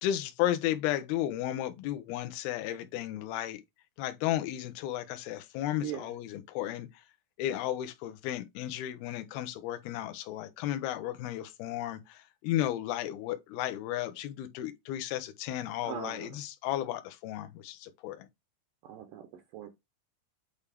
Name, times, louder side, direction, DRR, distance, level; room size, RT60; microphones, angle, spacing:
voice 1, 0.0-3.6 4.0-6.9 7.4-18.3, left 13 dB, 75° left, 2.5 m, -34 dB
voice 2, 15.8-16.3 18.8-19.7, right 10 dB, 85° right, 1.9 m, -40 dB
8.3 x 3.4 x 3.4 m
omnidirectional pair, 4.7 m